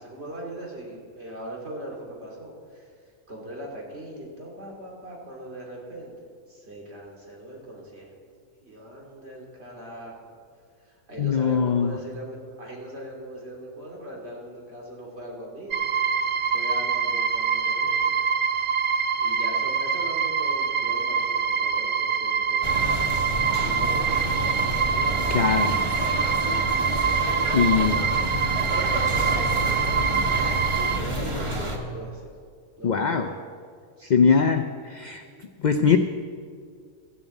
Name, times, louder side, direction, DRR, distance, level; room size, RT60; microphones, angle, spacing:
voice 1, 0.0-2.9 3.3-6.1 6.5-8.2 8.6-10.3 10.8-15.8 16.5-18.2 19.1-24.6 24.9-26.6 27.1-28.2 28.5-30.5 31.0-32.3 32.8-33.4 34.0-34.6 35.8-36.0, right 1 dB, 50° right, -2 dB, 2.7 m, -40 dB
voice 2, 11.2-12.0 25.3-25.7 27.5-28.0 32.8-33.3 34.1-35.2 35.6-36.0, left 6 dB, 70° left, 7 dB, 0.4 m, -21 dB
sound 1, 15.7-31.0, right 6 dB, 85° right, 0.4 m, -25 dB
sound 2, 22.6-31.8, right 1 dB, 20° right, 1.3 m, -29 dB
14.0 x 7.1 x 8.2 m, 2.1 s
omnidirectional pair, 1.5 m